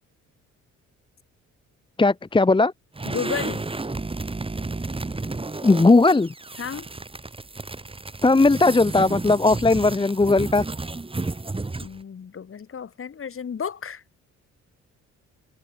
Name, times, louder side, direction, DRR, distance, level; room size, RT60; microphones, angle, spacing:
voice 1, 2.0-2.7 5.6-6.3 8.2-10.6, left 3 dB, 15° left, 1.1 m, -18 dB
sound 1, 2.9-12.0, right 3 dB, 20° right, 3.4 m, -32 dB
voice 2, 3.1-3.7 6.6-6.9 11.8-14.0, left 7 dB, 45° left, 3.9 m, -32 dB
cardioid pair, 90°, 30 cm